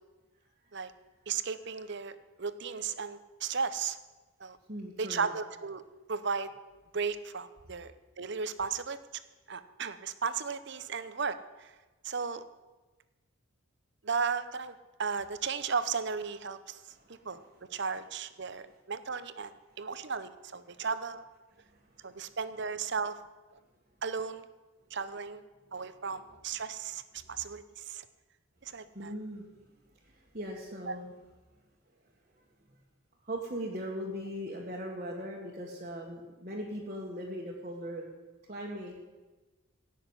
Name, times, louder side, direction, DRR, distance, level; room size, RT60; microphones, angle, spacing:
voice 1, 1.3-4.0 4.4-4.6 5.0-5.8 6.1-6.5 6.9-9.0 9.5-11.7 12.0-12.4 14.0-16.9 17.2-17.4 17.7-21.2 22.0-23.2 24.0-24.4 24.9-25.4 25.7-28.0 28.6-29.1 30.9-31.0, right 5 dB, 55° right, 13 dB, 0.8 m, -35 dB
voice 2, 4.7-5.3 17.0-17.3 28.8-29.5 30.0-31.1 33.2-38.0 38.5-38.9, equal, 35° right, -4 dB, 1.8 m, -39 dB
17.0 x 6.6 x 9.7 m, 1.2 s
head